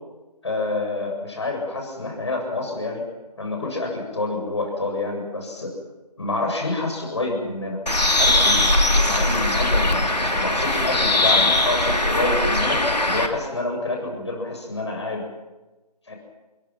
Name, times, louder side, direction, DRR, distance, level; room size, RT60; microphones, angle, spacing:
voice 1, 0.4-3.0 3.4-5.7 6.2-7.8 8.1-8.7 9.0-15.2 16.1-16.2, left 2 dB, 40° left, 1 dB, 7.5 m, -27 dB
Bird, 7.9-13.3, left 2 dB, 75° left, 3.1 m, -20 dB
28.5 x 22.0 x 5.9 m, 1.1 s
figure-of-eight pair, 160°, 21 cm